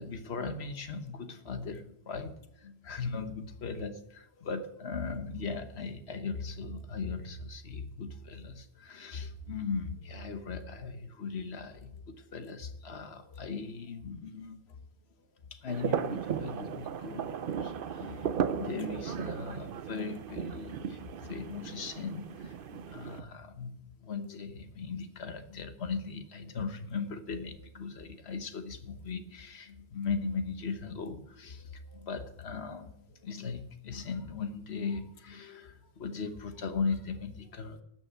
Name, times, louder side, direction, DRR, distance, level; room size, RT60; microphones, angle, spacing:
voice 1, 0.0-14.8 15.5-37.8, left 4 dB, 80° left, 9 dB, 1.4 m, -38 dB
sound 1, 15.7-23.2, right 8 dB, 60° right, 0.8 m, -36 dB
12.5 x 6.1 x 8.2 m, 0.76 s
omnidirectional pair, 1.1 m